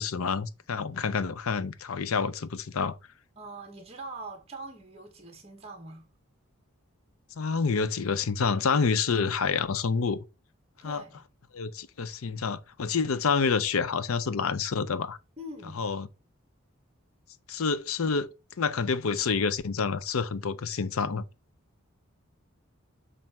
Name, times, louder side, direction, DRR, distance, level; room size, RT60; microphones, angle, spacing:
voice 1, 0.0-3.0 7.4-10.2 10.8-11.0 11.5-15.2 15.8-16.1 17.5-18.3 18.6-21.2, left 5 dB, 80° left, 0.6 m, -28 dB
voice 2, 3.3-6.1 10.8-11.3 15.4-15.9, right 2 dB, 30° right, 1.3 m, -43 dB
7.4 x 2.6 x 5.8 m
head